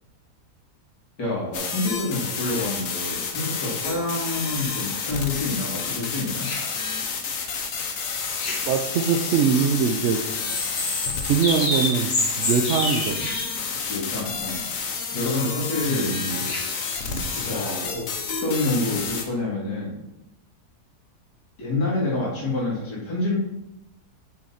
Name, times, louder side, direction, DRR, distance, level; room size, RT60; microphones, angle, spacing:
voice 1, 1.2-6.5 13.9-14.7 15.1-16.2 16.6-18.0 18.4-20.0 21.6-23.4, left 2 dB, 85° left, -5 dB, 2.8 m, -28 dB
sound 1, 1.5-19.2, left 5 dB, 60° left, 1.2 m, -30 dB
sound 2, 6.4-6.6 7.5-9.7 10.0-13.5 15.3-15.4 15.8-15.9 16.1-17.5, left 2 dB, 40° left, 1.6 m, -30 dB
voice 2, 8.5-10.2 11.3-13.2 15.9-16.5 17.0-17.3, right 6 dB, 65° right, 4 dB, 0.7 m, -23 dB
6.6 x 5.9 x 4.2 m, 0.85 s
omnidirectional pair, 1.7 m